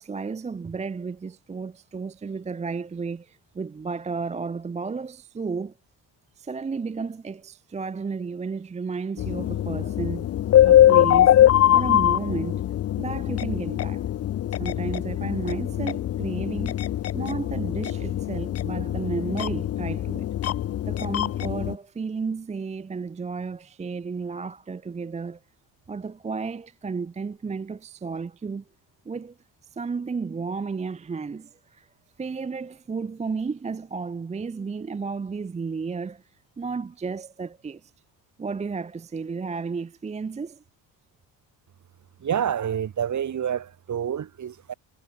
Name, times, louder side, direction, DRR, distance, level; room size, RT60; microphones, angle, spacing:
voice 1, 0.0-5.7 6.4-10.3 10.7-11.4 11.7-12.6 13.0-14.1 14.6-16.9 17.1-20.3 20.8-25.4 25.9-28.6 29.1-29.4 29.7-31.9 32.2-36.2 36.6-37.9 38.4-40.6, right 5 dB, 15° right, 0.5 m, -33 dB
sound 1, 9.2-21.7, left 12 dB, 35° left, 0.4 m, -22 dB
voice 2, 42.2-44.7, right 9 dB, 40° right, 2.0 m, -28 dB
cardioid pair, 140°, 43 cm